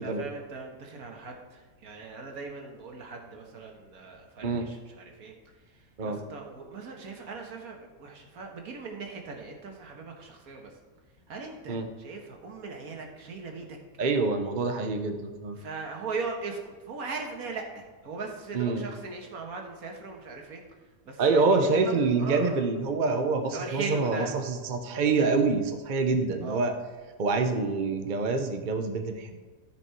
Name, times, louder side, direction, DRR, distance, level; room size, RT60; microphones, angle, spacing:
voice 1, 0.0-10.8 11.3-13.8 15.6-22.6 23.4-24.4 26.4-26.7, right 4 dB, 80° right, 2 dB, 1.8 m, -39 dB
voice 2, 14.0-15.6 18.5-18.8 21.2-24.4 24.7-26.7 27.2-29.4, right 4 dB, 40° right, 6 dB, 0.9 m, -26 dB
13.0 x 5.3 x 4.6 m, 1.3 s
omnidirectional pair, 1.5 m